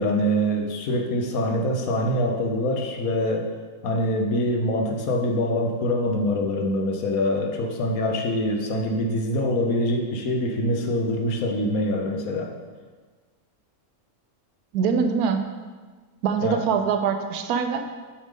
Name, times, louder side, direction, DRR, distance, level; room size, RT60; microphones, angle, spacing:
voice 1, 0.0-3.5 3.8-12.5 16.4-16.6, left 1 dB, 75° left, 2 dB, 1.3 m, -24 dB
voice 2, 14.7-15.4 16.2-17.8, right 6 dB, 85° right, 7 dB, 1.1 m, -23 dB
7.2 x 5.2 x 3.6 m, 1.4 s
omnidirectional pair, 1.6 m